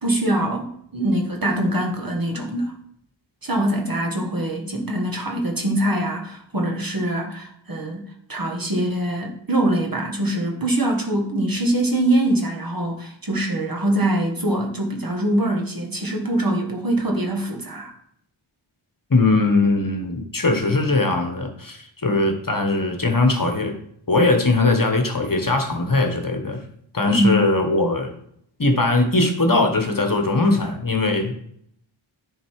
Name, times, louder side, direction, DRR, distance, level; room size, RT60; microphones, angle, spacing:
voice 1, 0.0-2.8 3.4-17.9 27.1-27.4, right 1 dB, 45° right, 1 dB, 1.7 m, -23 dB
voice 2, 19.1-23.7 24.1-26.6 26.9-28.1 28.6-31.4, left 2 dB, 40° left, 4 dB, 1.4 m, -20 dB
10.0 x 3.9 x 4.8 m, 0.70 s
wide cardioid pair, 50°, 49 cm